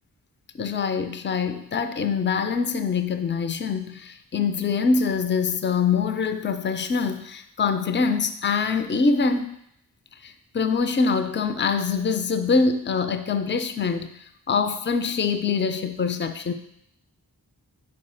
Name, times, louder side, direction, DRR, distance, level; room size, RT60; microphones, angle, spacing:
voice 1, 0.6-9.5 10.2-16.5, left 5 dB, 30° left, 9 dB, 0.5 m, -24 dB
5.5 x 4.5 x 4.2 m, 0.73 s
wide cardioid pair, 40°, 39 cm